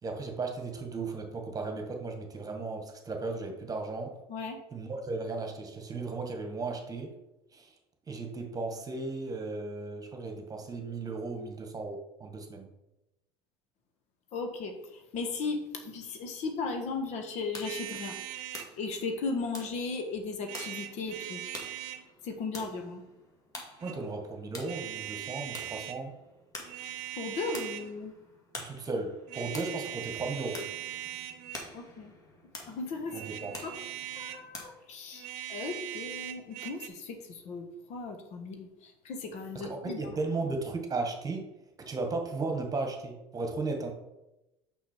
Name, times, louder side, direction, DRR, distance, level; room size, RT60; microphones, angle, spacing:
voice 1, 0.0-4.1 4.7-7.1 7.5-7.7 8.1-12.7 23.8-26.1 28.6-30.7 33.1-33.5 39.5-41.5 41.8-43.9, right 3 dB, 30° right, 4 dB, 1.5 m, -35 dB
voice 2, 14.3-18.2 18.8-21.4 22.2-23.0 27.2-28.1 31.7-32.1 32.6-33.2 33.6-33.7 34.1-40.1, left 4 dB, 60° left, 4 dB, 1.4 m, -36 dB
sound 1, 17.0-34.6, left 2 dB, 25° left, 2.0 m, -49 dB
sound 2, 17.6-18.7 20.4-22.0 23.6-24.0 24.6-26.0 26.6-28.0 29.3-31.7 33.1-34.5 35.1-36.9, right 13 dB, 65° right, 0.8 m, -40 dB
5.9 x 5.5 x 4.5 m, 0.94 s
supercardioid pair, 85°, 13 cm